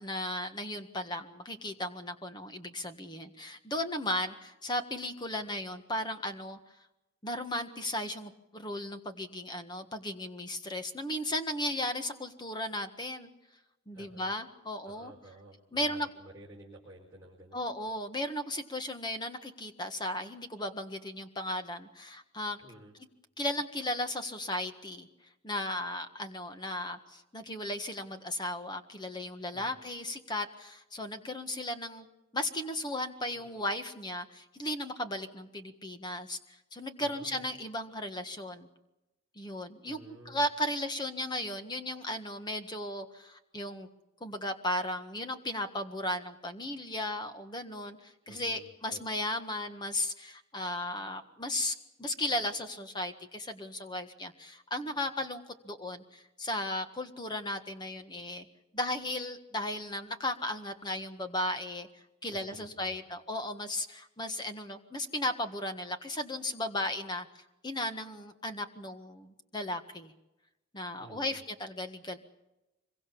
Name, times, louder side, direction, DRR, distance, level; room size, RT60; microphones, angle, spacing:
voice 1, 0.0-6.6 7.2-13.3 13.9-15.1 15.7-16.1 17.5-22.6 23.4-25.1 25.4-32.1 32.3-38.7 39.3-40.0 40.2-43.9 44.2-58.4 58.7-70.1 70.7-72.2, left 1 dB, 20° left, 7 dB, 1.6 m, -36 dB
voice 2, 13.9-14.3 14.8-17.6 22.6-22.9 29.5-29.8 33.3-33.6 37.0-37.5 39.8-40.4 48.2-49.0 62.3-63.0 71.0-71.4, right 2 dB, 15° right, -4 dB, 4.4 m, -52 dB
25.5 x 23.0 x 7.1 m, 0.95 s
head